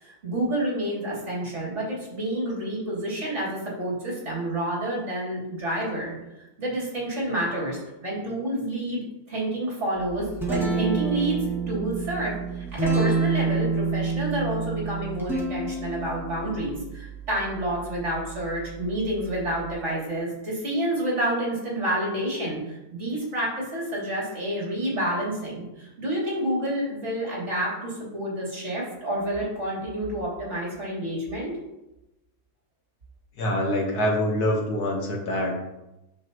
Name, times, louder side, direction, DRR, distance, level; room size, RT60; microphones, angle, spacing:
voice 1, 0.0-6.1 6.6-31.5, right 1 dB, 45° right, -5 dB, 3.2 m, -29 dB
Guitar, 10.0-19.7, right 4 dB, ahead, 1.8 m, -29 dB
voice 2, 33.4-35.6, left 1 dB, 80° left, 0 dB, 2.0 m, -25 dB
8.5 x 6.6 x 3.1 m, 0.94 s
omnidirectional pair, 1.7 m